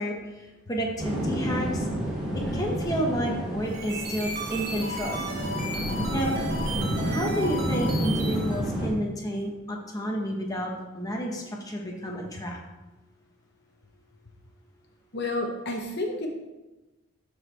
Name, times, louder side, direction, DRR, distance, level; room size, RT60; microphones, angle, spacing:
voice 1, 0.0-1.9 2.3-5.2 6.1-6.5 7.0-12.6, equal, 15° left, -1 dB, 1.0 m, -30 dB
sound 1, 1.0-8.9, equal, 5° right, 2.4 m, -30 dB
sound 2, 3.6-8.6, right 1 dB, 45° right, 1.3 m, -35 dB
voice 2, 15.1-16.3, left 2 dB, 50° left, 2 dB, 0.9 m, -30 dB
12.5 x 4.8 x 3.3 m, 1.1 s
head